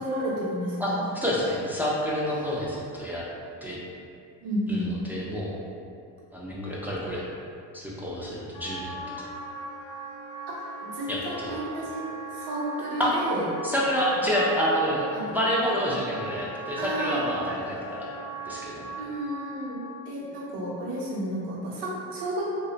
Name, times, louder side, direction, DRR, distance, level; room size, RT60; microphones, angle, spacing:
voice 1, 0.0-1.0 2.3-2.7 4.4-4.9 10.5-12.1 12.3-13.5 15.1-15.2 16.8-17.2 19.0-22.5, equal, 70° right, -5 dB, 0.7 m, -32 dB
voice 2, 0.8-3.2 3.6-3.8 4.7-5.6 6.3-7.3 7.7-8.9 9.2-9.3 11.1-11.5 13.0-13.1 13.6-18.1 18.4-18.9, equal, 5° right, -6 dB, 0.4 m, -28 dB
Wind instrument woodwind instrument, 8.5-19.8, right 3 dB, 50° left, 0.6 m, -39 dB
2.6 x 2.0 x 2.4 m, 2.4 s
cardioid pair, 75°, 41 cm